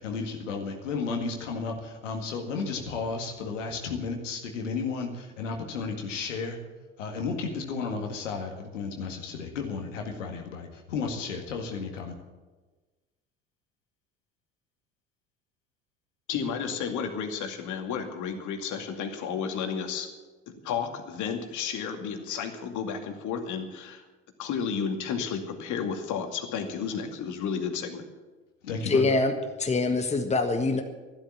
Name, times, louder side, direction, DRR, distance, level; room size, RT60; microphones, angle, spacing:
voice 1, 0.0-6.6 7.0-12.2 28.6-29.2, left 4 dB, 75° left, 3 dB, 2.0 m, -33 dB
voice 2, 16.3-20.1 20.5-24.0 24.4-28.0, left 6 dB, 50° left, 5 dB, 2.4 m, -32 dB
voice 3, 28.8-29.3 29.6-30.8, left 3 dB, 20° left, 5 dB, 1.5 m, -24 dB
13.0 x 12.0 x 7.2 m, 1.3 s
figure-of-eight pair, 65°, 37 cm